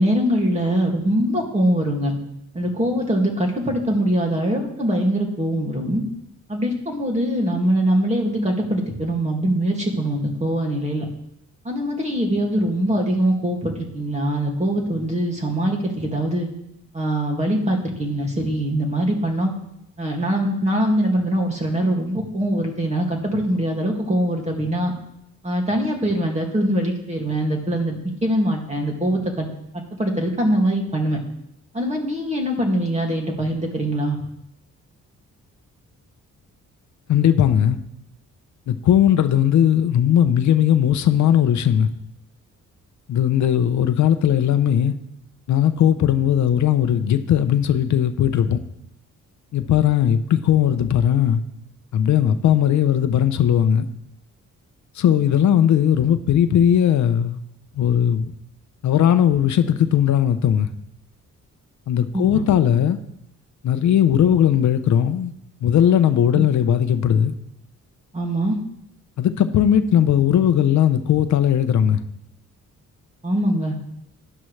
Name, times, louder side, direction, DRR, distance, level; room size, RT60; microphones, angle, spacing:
voice 1, 0.0-2.1 2.5-6.0 6.5-11.1 11.6-16.5 16.9-19.5 20.0-24.9 25.4-29.5 29.7-31.2 31.7-34.2 62.1-62.4 66.3-66.4 68.1-68.6 73.2-73.8, right 1 dB, 20° right, 1 dB, 2.2 m, -22 dB
voice 2, 37.1-37.8 38.7-41.9 43.1-44.9 45.5-48.6 49.5-51.4 51.9-53.8 55.0-57.4 57.8-58.3 58.8-60.7 61.9-63.0 63.6-65.3 65.6-67.3 69.2-72.0, left 9 dB, 65° left, 10 dB, 0.7 m, -18 dB
12.0 x 11.0 x 3.3 m, 0.79 s
cardioid pair, 135°, 31 cm